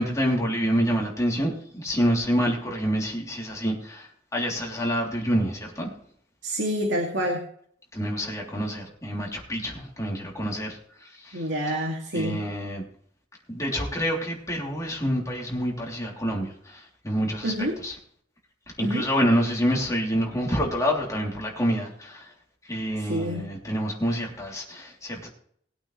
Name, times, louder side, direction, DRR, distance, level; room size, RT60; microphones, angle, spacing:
voice 1, 0.0-5.9 7.9-11.4 12.1-12.8 13.5-17.9 18.8-22.3 22.7-25.3, equal, 15° left, -2 dB, 3.2 m, -27 dB
voice 2, 6.4-7.4 11.3-12.4 17.4-17.7 18.8-19.1 23.0-23.4, equal, 75° right, 0 dB, 2.5 m, -27 dB
20.5 x 8.8 x 3.3 m, 0.62 s
head